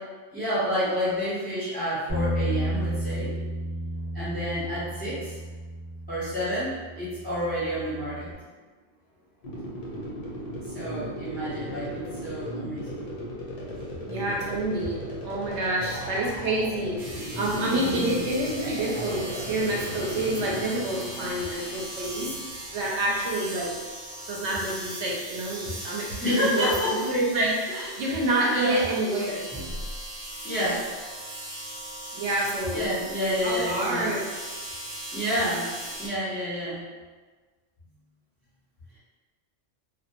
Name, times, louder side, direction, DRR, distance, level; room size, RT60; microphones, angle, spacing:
voice 1, 0.3-3.3 4.1-5.4 6.1-8.3 10.7-13.1 13.8-13.9 17.6-18.2 26.2-26.9 27.7-28.0 28.4-28.9 29.5-29.7 30.4-30.8 32.7-34.1 34.8-35.7 36.0-36.9, equal, 10° left, -10 dB, 0.5 m, -29 dB
Bass guitar, 2.1-8.3, equal, 20° right, 0.9 m, -32 dB
sound 1, 9.4-20.6, equal, 80° left, 0.3 m, -36 dB
voice 2, 14.1-23.7 24.3-29.4 32.1-32.9 33.2-34.2, right 1 dB, 70° right, -4 dB, 0.8 m, -28 dB
sound 2, 17.0-36.1, right 1 dB, 50° right, 0.4 m, -39 dB
2.1 x 2.1 x 2.8 m, 1.4 s
omnidirectional pair, 1.3 m